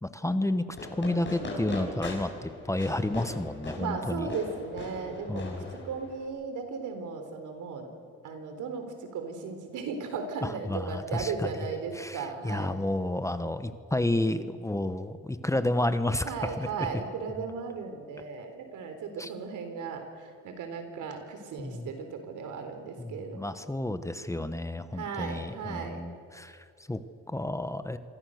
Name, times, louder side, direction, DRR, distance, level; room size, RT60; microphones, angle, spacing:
voice 1, 0.0-4.3 5.3-5.7 10.4-11.5 11.9-16.9 19.2-19.3 21.6-21.9 23.0-28.0, left 1 dB, 10° left, 11 dB, 1.2 m, -31 dB
Fireworks, 0.7-6.3, left 2 dB, 40° left, 6.7 m, -40 dB
voice 2, 3.8-5.5 5.8-7.9 8.2-12.7 16.2-23.6 24.9-26.0, right 5 dB, 80° right, 6 dB, 4.0 m, -36 dB
27.0 x 24.0 x 6.6 m, 2.2 s
cardioid pair, 90°, 30 cm